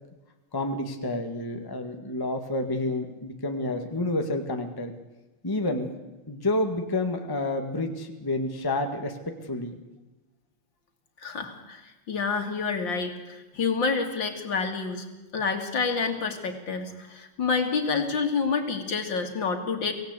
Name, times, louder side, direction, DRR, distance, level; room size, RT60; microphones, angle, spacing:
voice 1, 0.5-4.9 5.4-5.9 6.3-9.2 9.4-9.7, left 2 dB, 10° left, 5 dB, 1.6 m, -29 dB
voice 2, 11.2-15.1 15.3-19.9, left 5 dB, 55° left, 5 dB, 2.9 m, -28 dB
24.5 x 17.5 x 8.2 m, 1.1 s
omnidirectional pair, 2.4 m